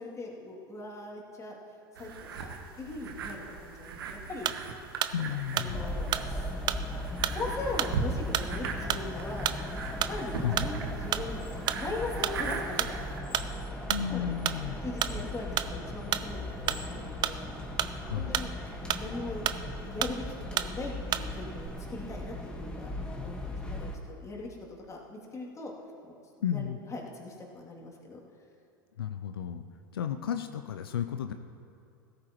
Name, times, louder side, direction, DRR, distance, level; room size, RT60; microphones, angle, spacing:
voice 1, 0.0-1.6 2.0-4.5 5.1-5.2 5.5-6.5 7.3-9.5 10.1-13.0 13.7-13.8 14.1-17.5 18.2-18.5 18.9-19.5 19.8-22.9 23.2-25.7 26.0-26.1 26.4-28.2, left 2 dB, 25° left, -3 dB, 2.6 m, -40 dB
sound 1, 2.0-13.2, right 5 dB, 80° right, 1.1 m, -39 dB
sound 2, 4.4-4.7 5.0-5.2 5.6-6.3 6.7-6.9 7.2-7.4 7.8-8.0 8.3-8.5 8.9-9.1 9.4-9.6 10.0-10.3 10.6-10.8 11.1-11.3 11.7-11.8 12.2-12.4 12.8-13.0 13.3-13.5 13.9-14.1 14.4-14.6 15.0-15.2 15.6-15.7 16.1-16.3 16.7-16.8 17.2-18.0 18.3-18.5 18.9-19.1 19.4-19.7 20.0-20.2 20.6-20.7 21.1-21.3 21.6-21.7, right 11 dB, 40° right, 0.6 m, -31 dB
voice 2, 5.1-5.9 10.4-10.6 13.9-14.8 18.0-18.3 26.4-26.8 29.0-29.6 29.9-31.3, left 9 dB, 85° left, 8 dB, 0.5 m, -33 dB
sound 3, 5.7-24.0, left 1 dB, 10° left, 1.5 m, -38 dB
16.5 x 14.0 x 3.0 m, 2.6 s
hypercardioid pair, 90°, 12 cm